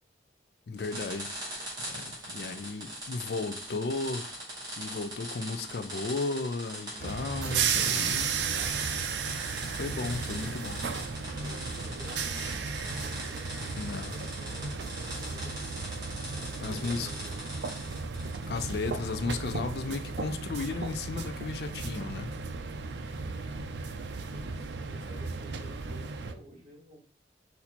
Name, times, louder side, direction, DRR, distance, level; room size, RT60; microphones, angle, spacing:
voice 1, 0.7-1.3 1.9-4.3 4.8-8.4 9.7-10.8 13.8-14.2 16.6-17.1 18.5-22.3, left 3 dB, 65° left, 0.4 m, -34 dB
sound 1, 0.8-18.5, right 1 dB, 20° right, 1.8 m, -41 dB
sound 2, 7.0-26.3, right 5 dB, 75° right, 0.5 m, -34 dB
voice 2, 11.4-15.6 16.3-17.5 23.1-23.4 24.2-27.0, equal, 40° right, 2.4 m, -51 dB
4.2 x 2.7 x 4.2 m
head